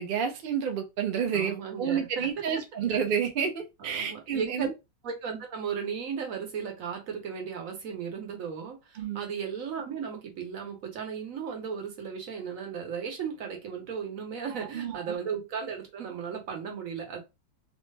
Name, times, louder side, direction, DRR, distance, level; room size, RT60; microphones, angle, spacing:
voice 1, 0.0-4.7 8.9-9.2 14.5-15.1, right 7 dB, 80° right, 0.4 m, -30 dB
voice 2, 1.3-2.4 3.8-4.7 5.0-17.2, right 6 dB, 55° right, 1.2 m, -35 dB
3.1 x 2.0 x 3.2 m
omnidirectional pair, 1.9 m